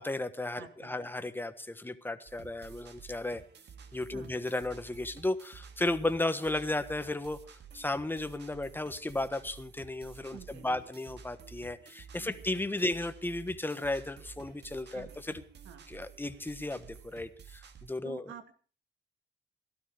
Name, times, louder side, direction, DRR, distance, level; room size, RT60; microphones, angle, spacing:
voice 1, 0.0-3.4 3.9-7.4 7.7-15.4 15.9-18.2, left 2 dB, 10° left, 10 dB, 1.4 m, -34 dB
voice 2, 0.6-1.3 4.1-4.3 10.3-10.9 12.2-12.4 14.9-15.1 15.6-15.8 18.0-18.5, right 9 dB, 85° right, 7 dB, 2.6 m, -50 dB
sound 1, 2.3-17.9, right 6 dB, 60° right, 2.1 m, -52 dB
17.5 x 12.5 x 5.1 m, 0.40 s
cardioid pair, 90°, 20 cm